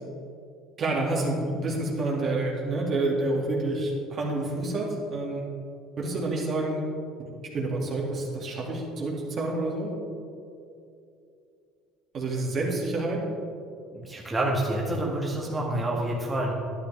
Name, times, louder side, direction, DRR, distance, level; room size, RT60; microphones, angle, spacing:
voice 1, 0.8-5.4 6.0-6.8 7.5-9.9 12.1-13.2, right 2 dB, 45° right, -2 dB, 2.4 m, -28 dB
voice 2, 13.9-16.5, right 1 dB, 15° right, -3 dB, 1.8 m, -28 dB
11.5 x 9.8 x 3.5 m, 2.5 s
supercardioid pair, 80°, 0 cm